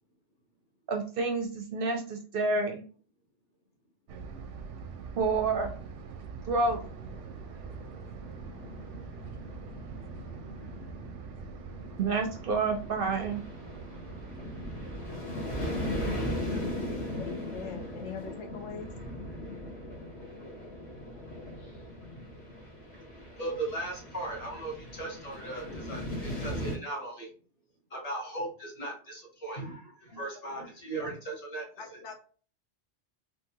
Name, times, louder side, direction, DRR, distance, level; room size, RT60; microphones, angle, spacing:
voice 1, 0.9-2.8 5.2-5.7 6.5-6.8 12.0-13.4, right 3 dB, 60° right, 4 dB, 0.7 m, -29 dB
sound 1, 4.1-15.2, right 5 dB, 90° right, 0.9 m, -44 dB
sound 2, 6.8-26.8, left 1 dB, 65° left, 1.6 m, -39 dB
voice 2, 16.2-16.7 21.6-21.8 22.1-22.2 23.4-27.3 27.9-32.0, right 2 dB, 35° left, -1 dB, 1.2 m, -38 dB
voice 3, 17.2-18.9 30.1-30.2 30.9-31.1 31.8-32.2, left 5 dB, 85° left, 3 dB, 1.1 m, -42 dB
3.8 x 2.3 x 2.8 m, 0.40 s
omnidirectional pair, 1.2 m